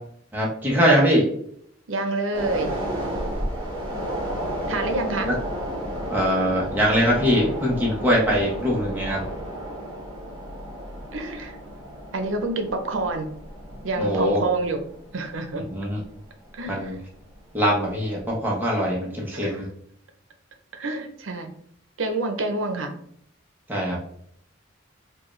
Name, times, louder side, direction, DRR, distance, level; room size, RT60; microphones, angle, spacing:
voice 1, 0.3-1.3 3.4-3.5 5.2-5.3 6.1-9.3 14.0-14.4 15.7-16.0 16.7-17.0 17.5-19.7 23.7-24.0, equal, 10° right, -5 dB, 0.8 m, -22 dB
voice 2, 1.9-2.7 4.7-5.3 10.4-10.5 11.1-11.6 12.1-13.3 13.8-14.8 15.1-15.6 16.5-17.0 19.3-19.6 20.7-21.5 22.0-22.9, right 2 dB, 85° right, 6 dB, 0.7 m, -27 dB
sound 1, 2.3-16.9 17.2-17.4, equal, 25° right, 1.5 m, -33 dB
4.6 x 2.4 x 3.1 m, 0.66 s
head